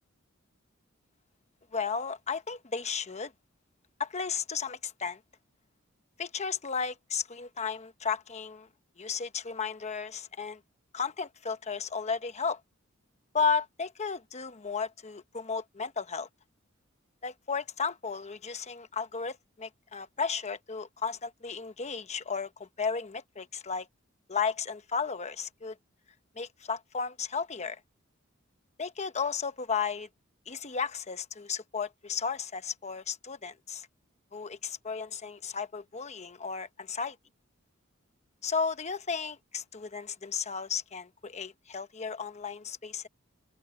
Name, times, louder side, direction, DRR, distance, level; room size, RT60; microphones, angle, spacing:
voice 1, 1.7-3.3 4.0-5.2 6.2-8.7 9.0-10.6 10.9-12.6 13.3-16.3 17.2-23.9 24.3-25.8 26.4-27.8 28.8-30.1 30.5-33.9 34.3-37.2 38.4-43.1, left 5 dB, 35° left, 1.0 m, -34 dB
open air
head